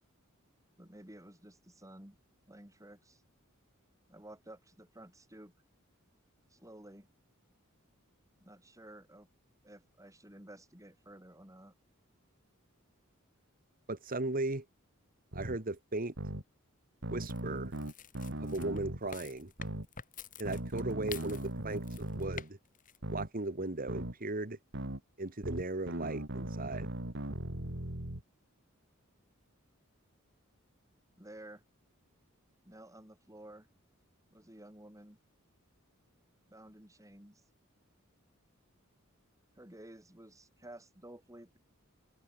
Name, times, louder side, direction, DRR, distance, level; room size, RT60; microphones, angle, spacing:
voice 1, 0.8-2.2 2.5-3.2 4.1-5.5 6.5-7.1 8.4-9.3 9.6-11.7 31.2-31.6 32.7-33.7 34.3-35.2 36.5-37.4 39.6-41.6, right 1 dB, 15° right, 5.3 m, -53 dB
voice 2, 13.9-14.7 15.3-16.1 17.1-17.7 18.4-19.5 20.4-22.6 23.1-24.6 25.2-26.9, right 2 dB, 45° right, 1.9 m, -37 dB
sound 1, 15.3-15.6 16.2-16.4 17.0-19.0 19.6-19.9 20.5-22.4 23.0-23.3 23.9-24.1 24.7-25.0 25.4-28.2, right 1 dB, 60° right, 3.2 m, -39 dB
sound 2, 17.2-22.5 22.7-23.0, left 5 dB, 40° left, 3.7 m, -47 dB
open air
head